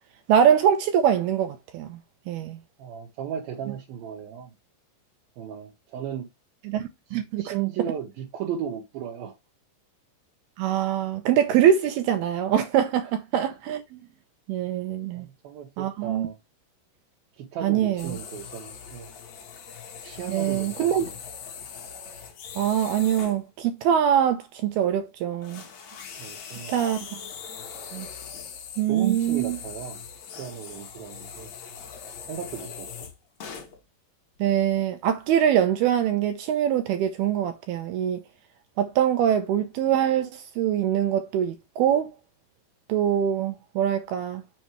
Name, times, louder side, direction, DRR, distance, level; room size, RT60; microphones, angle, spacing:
voice 1, 0.3-2.0 2.3-2.6 6.7-7.5 10.6-14.0 14.5-15.3 15.8-16.3 17.6-18.2 20.3-21.1 22.6-25.6 26.7-27.2 27.9-28.1 28.8-29.6 34.4-38.2 38.8-42.1 42.9-44.4, right 9 dB, 85° right, 2.2 m, -23 dB
voice 2, 2.8-4.5 5.4-6.3 7.1-9.3 15.1-16.4 17.4-19.1 20.0-21.1 26.2-26.8 28.9-30.0 30.4-31.5 32.2-32.9, right 9 dB, 65° right, 2.7 m, -35 dB
sound 1, 18.0-23.4 24.7-24.9 25.4-33.8 34.4-34.7 35.3-35.4 35.8-35.9, left 7 dB, 65° left, 1.8 m, -41 dB
6.8 x 6.3 x 3.1 m
omnidirectional pair, 5.4 m